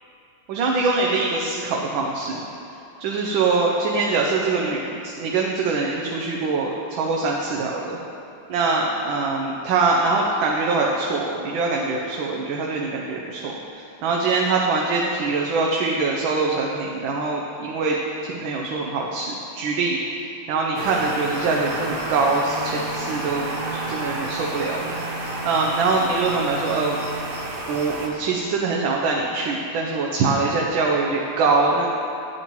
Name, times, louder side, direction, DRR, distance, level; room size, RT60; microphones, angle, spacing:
voice 1, 0.5-2.4 3.0-8.0 8.5-13.6 14.0-17.9 18.2-20.0 20.5-23.5 23.9-24.9 25.4-27.0 27.7-31.9, right 3 dB, 85° right, -1 dB, 1.5 m, -23 dB
sound 1, 20.7-28.1, right 2 dB, 40° right, 0.8 m, -30 dB
10.5 x 8.9 x 3.0 m, 2.9 s
omnidirectional pair, 2.1 m